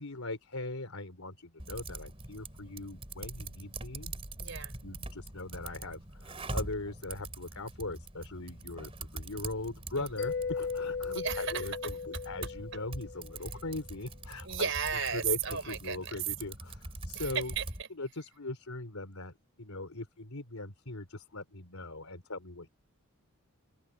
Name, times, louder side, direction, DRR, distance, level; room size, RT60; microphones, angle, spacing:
voice 1, 0.0-4.1 4.8-14.7 15.1-17.5 18.0-22.7, left 2 dB, 85° left, 3.4 m, -40 dB
Typing, 1.6-17.8, right 2 dB, 25° right, 3.8 m, -43 dB
voice 2, 4.4-4.7 10.0-10.1 11.1-11.7 14.4-16.2 17.1-17.9, right 7 dB, 60° right, 4.3 m, -34 dB
Mallet percussion, 10.2-13.6, left 5 dB, 50° left, 0.6 m, -37 dB
head